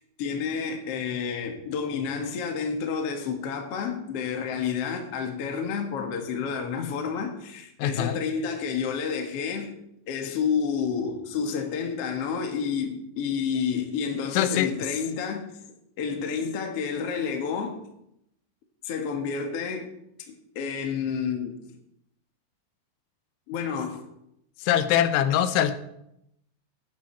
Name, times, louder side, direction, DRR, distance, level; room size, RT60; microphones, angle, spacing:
voice 1, 0.0-9.7 10.1-15.5 16.0-17.8 18.8-19.9 20.3-21.6 23.5-24.0, left 6 dB, 60° left, 1.5 m, -30 dB
voice 2, 7.8-8.2 14.3-14.7 24.6-25.8, left 10 dB, 85° left, 3.2 m, -23 dB
17.5 x 9.6 x 4.5 m
omnidirectional pair, 5.4 m